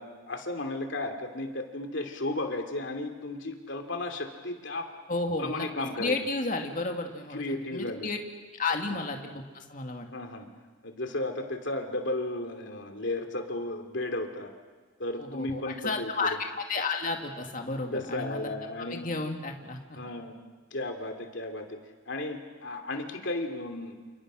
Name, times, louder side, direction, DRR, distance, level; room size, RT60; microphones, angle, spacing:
voice 1, 0.0-4.9 5.4-6.2 7.3-8.1 8.9-9.0 10.1-10.5 10.8-14.5 15.0-16.1 17.9-19.1 20.0-20.4 20.7-21.8 22.1-24.0, left 2 dB, 60° left, 4 dB, 2.8 m, -34 dB
voice 2, 5.1-5.7 6.0-8.2 8.6-10.1 15.2-18.5 18.9-20.0, left 3 dB, 40° left, 3 dB, 2.3 m, -32 dB
29.0 x 29.0 x 6.4 m, 1.4 s
head